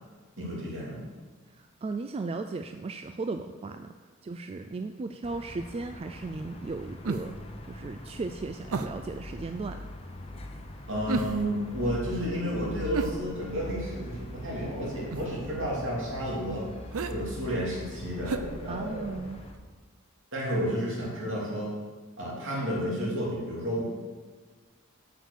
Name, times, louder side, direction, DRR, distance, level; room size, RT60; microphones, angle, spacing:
voice 1, 0.4-1.0 10.9-16.7 17.1-19.1 20.3-21.8 22.2-23.8, equal, 65° right, -5 dB, 3.2 m, -31 dB
voice 2, 1.5-3.9 4.2-7.3 7.6-9.9 18.7-19.4, right 3 dB, 30° right, 7 dB, 0.3 m, -36 dB
sound 1, 5.2-19.5, left 1 dB, 30° left, 0.9 m, -42 dB
sound 2, 7.0-7.5 8.7-9.1 11.1-11.6 12.9-13.7 15.1-15.4 16.9-17.2 18.2-19.2 19.5-19.6, right 4 dB, 85° right, 0.6 m, -34 dB
8.0 x 6.5 x 6.6 m, 1.4 s
head